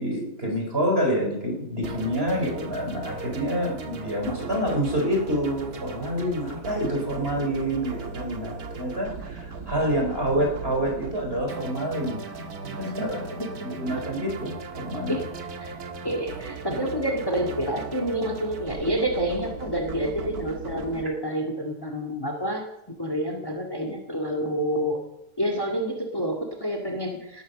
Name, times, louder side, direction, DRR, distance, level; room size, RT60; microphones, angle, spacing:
voice 1, 0.0-13.2 13.6-15.2 16.7-16.8, equal, 40° right, 2 dB, 4.2 m, -27 dB
sound 1, 1.8-21.0, right 4 dB, 85° right, 2.0 m, -37 dB
voice 2, 12.8-13.8 15.1-15.3 15.6-15.7 16.0-25.0 25.4-27.4, equal, 15° left, 3 dB, 2.2 m, -28 dB
18.5 x 9.4 x 6.6 m, 0.83 s
omnidirectional pair, 1.6 m